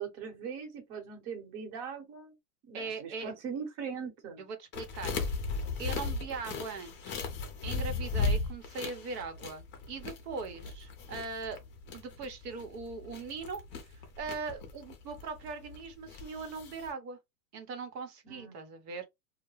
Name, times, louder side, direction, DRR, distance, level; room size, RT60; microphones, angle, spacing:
voice 1, 0.0-2.3 2.7-4.5 18.2-18.6, right 6 dB, 45° right, 1.2 m, -40 dB
voice 2, 2.7-3.3 4.4-5.1 5.8-7.2 7.6-11.6 11.9-13.6 13.9-17.2 17.5-19.0, right 4 dB, 70° right, 1.1 m, -40 dB
sound 1, 4.7-16.9, left 4 dB, 25° left, 0.5 m, -37 dB
2.2 x 2.2 x 3.1 m
hypercardioid pair, 130°, 49 cm